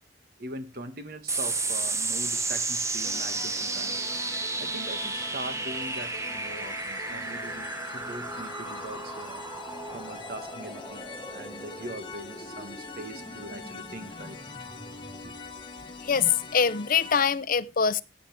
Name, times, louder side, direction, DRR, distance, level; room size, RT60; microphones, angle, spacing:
voice 1, 0.4-4.0 4.6-11.1 11.3-14.4 15.1-15.3, right 2 dB, 55° right, 1.8 m, -42 dB
sound 1, 1.3-16.1, right 3 dB, 15° right, 1.0 m, -34 dB
sound 2, 3.0-17.2, left 3 dB, 30° left, 2.1 m, -42 dB
voice 2, 16.0-18.0, left 6 dB, 50° left, 0.7 m, -24 dB
16.5 x 8.4 x 3.4 m
head